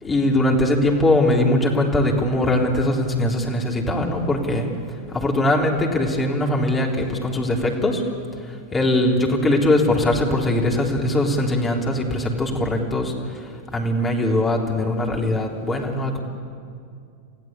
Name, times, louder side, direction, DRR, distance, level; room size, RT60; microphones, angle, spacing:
voice 1, 0.0-4.7 5.1-8.0 8.7-13.4 13.7-16.2, left 1 dB, 15° left, -1 dB, 3.6 m, -21 dB
29.5 x 15.5 x 8.4 m, 2.3 s
figure-of-eight pair, 90°, 0 cm